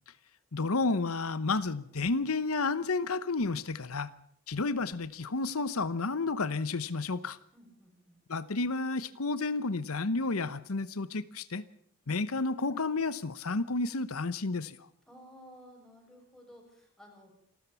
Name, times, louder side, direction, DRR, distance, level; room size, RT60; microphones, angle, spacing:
voice 1, 0.5-4.1 4.5-7.4 8.3-11.6 12.1-14.9, left 3 dB, 85° left, 16 dB, 1.0 m, -31 dB
voice 2, 7.5-8.2 15.1-17.3, equal, ahead, 1 dB, 6.9 m, -54 dB
28.0 x 13.0 x 7.0 m, 0.68 s
head